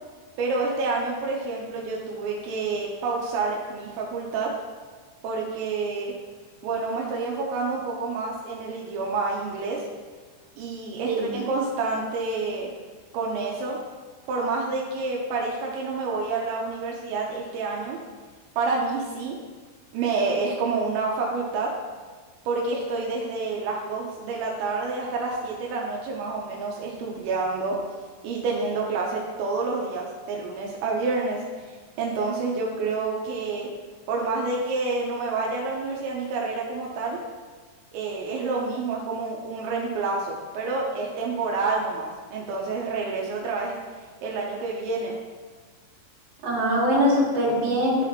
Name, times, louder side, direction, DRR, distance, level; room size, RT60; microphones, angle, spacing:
voice 1, 0.4-4.5 5.2-6.1 6.6-9.9 10.6-12.7 13.1-13.8 14.3-18.0 18.6-19.4 19.9-21.7 22.5-27.8 28.2-33.7 34.1-37.2 37.9-43.8 44.2-45.2, right 3 dB, 85° right, -2 dB, 2.9 m, -28 dB
voice 2, 11.1-11.4 46.4-48.0, equal, 55° right, -5 dB, 2.9 m, -22 dB
12.0 x 4.1 x 2.9 m, 1.4 s
omnidirectional pair, 5.4 m